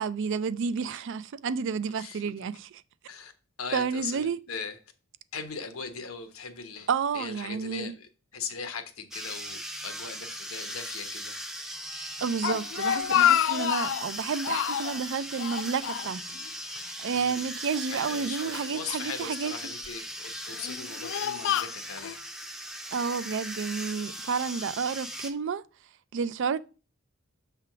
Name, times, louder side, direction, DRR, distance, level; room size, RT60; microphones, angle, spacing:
voice 1, 0.0-2.7 3.7-4.4 6.9-7.9 12.0-16.2 16.7-19.5 22.9-25.6 26.1-26.6, right 6 dB, 60° right, 0.4 m, -30 dB
voice 2, 3.6-4.8 5.3-6.9 7.1-11.3 17.1-17.5 17.9-22.1, left 5 dB, 90° left, 1.1 m, -39 dB
sound 1, 9.1-25.3, equal, ahead, 0.6 m, -39 dB
Speech, 12.2-14.1 14.4-15.0 15.4-16.5 16.8-16.9 17.7-18.7 19.4-19.9 20.5-22.2, left 10 dB, 65° left, 0.3 m, -28 dB
6.6 x 3.5 x 5.8 m
head